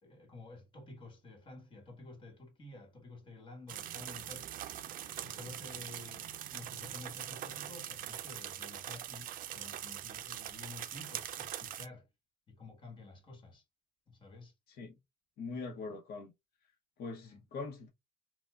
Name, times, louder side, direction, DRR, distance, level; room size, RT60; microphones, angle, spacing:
voice 1, 0.0-4.5 5.2-12.1 12.5-13.6 14.1-14.5 17.2-17.4, left 2 dB, 30° left, 1.4 m, -51 dB
sound 1, 3.7-11.9, right 11 dB, 55° right, 0.4 m, -43 dB
voice 2, 15.4-16.3 17.0-17.9, left 4 dB, 65° left, 0.8 m, -42 dB
4.3 x 2.2 x 2.3 m
cardioid pair, 110°, 17 cm